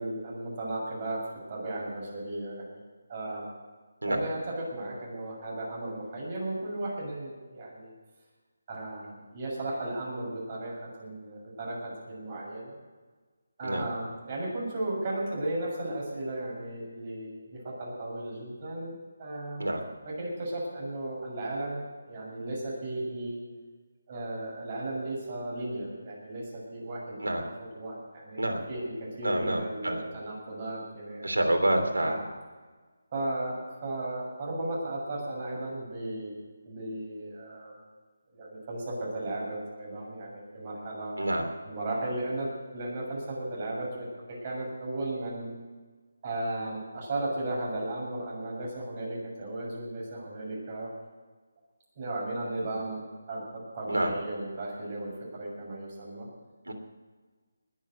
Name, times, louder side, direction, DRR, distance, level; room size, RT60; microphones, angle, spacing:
voice 1, 0.0-2.8 3.1-3.4 4.0-7.9 8.7-12.8 13.6-18.9 19.2-19.6 20.0-21.8 22.1-23.4 24.1-28.9 29.2-31.4 31.9-32.2 33.1-36.3 36.6-37.8 38.3-41.2 41.6-45.5 46.2-50.9 51.9-53.0 53.3-56.3, right 1 dB, 35° right, -4 dB, 6.8 m, -35 dB
voice 2, 29.2-30.1 31.2-32.2 41.2-41.5 53.9-54.1 56.7-56.8, right 1 dB, 85° right, 4 dB, 3.1 m, -27 dB
20.5 x 7.9 x 8.1 m, 1.4 s
figure-of-eight pair, 160°, 0 cm